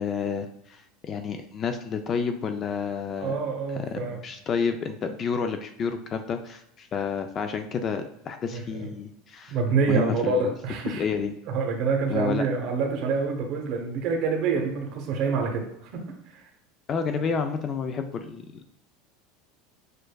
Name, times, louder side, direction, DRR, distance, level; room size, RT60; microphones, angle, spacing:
voice 1, 0.0-3.3 3.8-9.6 9.9-10.5 10.9-11.3 12.1-12.5 16.9-18.7, left 6 dB, 30° left, 7 dB, 0.3 m, -30 dB
voice 2, 3.2-4.2 8.5-8.9 9.5-11.1 11.5-16.0 16.3-16.5 17.1-17.2, right 4 dB, 50° right, 1 dB, 0.9 m, -27 dB
6.5 x 2.5 x 2.3 m, 0.77 s
supercardioid pair, 140°, 0 cm